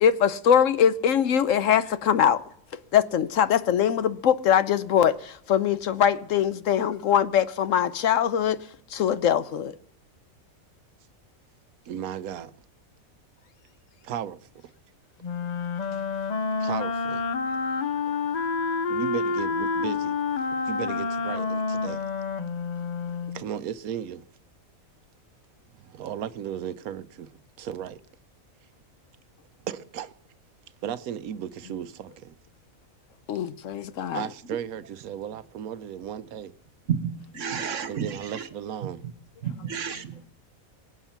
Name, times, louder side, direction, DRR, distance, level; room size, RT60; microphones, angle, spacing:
voice 1, 0.0-2.4 2.9-8.6 8.9-9.7 17.8-18.4 33.3-34.2, left 9 dB, 70° left, 1.1 m, -22 dB
voice 2, 11.9-12.5 14.0-14.5 16.6-17.2 18.9-20.1 20.6-22.0 23.3-24.2 25.7-27.3 27.6-28.0 29.6-30.1 30.8-32.4 34.1-36.5 37.9-39.0, right 9 dB, 90° right, 1.2 m, -35 dB
Wind instrument woodwind instrument, 15.2-23.4, left 4 dB, 50° left, 0.5 m, -28 dB
voice 3, 36.9-38.5 38.8-38.9 39.4-40.3, right 7 dB, 60° right, 1.4 m, -31 dB
23.0 x 8.1 x 5.8 m
omnidirectional pair, 1.5 m